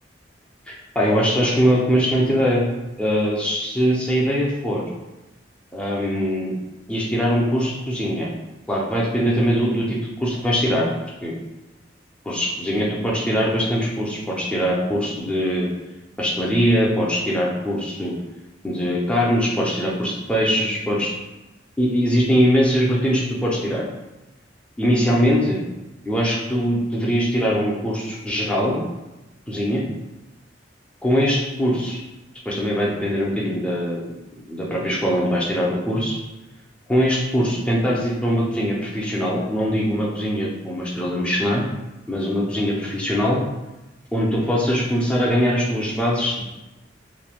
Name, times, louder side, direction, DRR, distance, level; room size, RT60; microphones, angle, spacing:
voice 1, 0.7-2.7 3.0-4.8 5.7-6.5 6.9-8.3 8.7-10.9 11.2-11.3 12.3-15.7 16.2-18.1 18.6-21.1 21.8-23.8 24.8-25.6 26.1-28.8 29.5-29.8 31.0-32.0 32.5-34.0 34.3-36.2 36.9-41.6 42.1-43.4 44.1-46.4, equal, 5° left, -4 dB, 0.5 m, -21 dB
3.1 x 2.1 x 2.4 m, 1.0 s
head